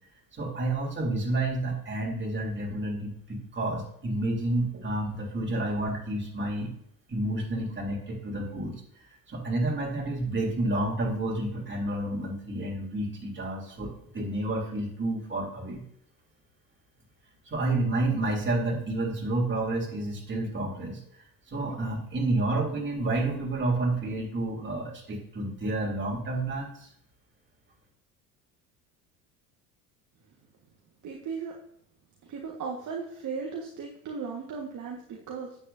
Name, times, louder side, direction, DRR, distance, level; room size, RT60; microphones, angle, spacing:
voice 1, 0.3-6.7 7.1-8.8 9.3-15.8 17.5-21.0 21.5-26.9, right 2 dB, 25° right, -1 dB, 3.5 m, -30 dB
voice 2, 31.0-31.6 32.2-35.6, right 5 dB, 40° right, 0 dB, 1.8 m, -36 dB
9.8 x 8.1 x 2.8 m, 0.69 s
hypercardioid pair, 70°, 45 cm